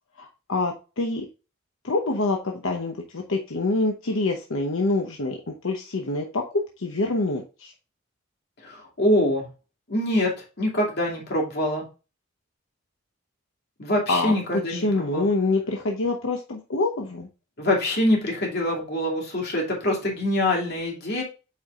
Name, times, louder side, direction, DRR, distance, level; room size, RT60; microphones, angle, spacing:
voice 1, 0.2-1.3 1.8-7.7 14.1-14.3 14.7-17.3, left 2 dB, 75° left, 1 dB, 0.9 m, -26 dB
voice 2, 8.6-9.5 9.9-11.8 13.8-15.2 17.6-21.2, left 1 dB, 50° left, -1 dB, 2.6 m, -24 dB
8.5 x 4.7 x 2.4 m, 0.31 s
head